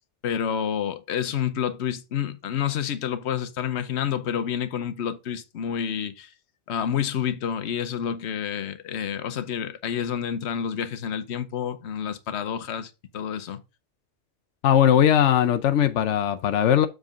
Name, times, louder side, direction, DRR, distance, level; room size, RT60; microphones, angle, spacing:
voice 1, 0.2-6.3 6.7-13.6, left 8 dB, 70° left, 1.0 m, -29 dB
voice 2, 14.6-16.9, left 10 dB, 90° left, 1.0 m, -19 dB
7.4 x 3.8 x 5.1 m
omnidirectional pair, 1.2 m